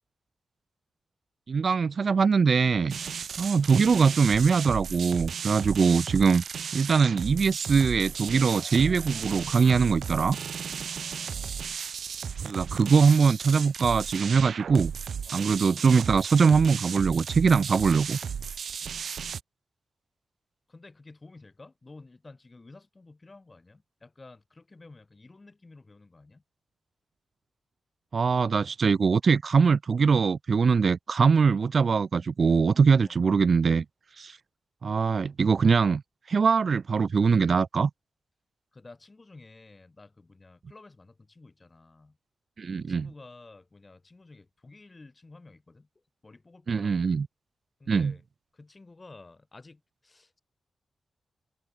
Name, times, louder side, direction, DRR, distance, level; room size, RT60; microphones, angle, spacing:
voice 1, 1.5-3.0 3.4-6.4 6.7-10.4 12.4-14.9 15.3-18.2 28.1-33.8 34.2-34.4 34.8-36.0 36.3-37.9 42.6-43.1 46.7-47.3 47.9-48.1, right 5 dB, 60° right, 0.4 m, -22 dB
sound 1, 2.9-19.4, right 7 dB, 75° right, 0.9 m, -35 dB
sound 2, 7.6-10.4 10.8-10.9, equal, 5° left, 3.0 m, -54 dB
voice 2, 10.8-11.7 15.2-15.5 18.8-19.0 20.7-26.4 33.0-33.2 38.7-42.2 42.7-47.1 47.8-48.2 48.5-50.4, left 3 dB, 35° left, 6.5 m, -52 dB
cardioid pair, 60°, 0 cm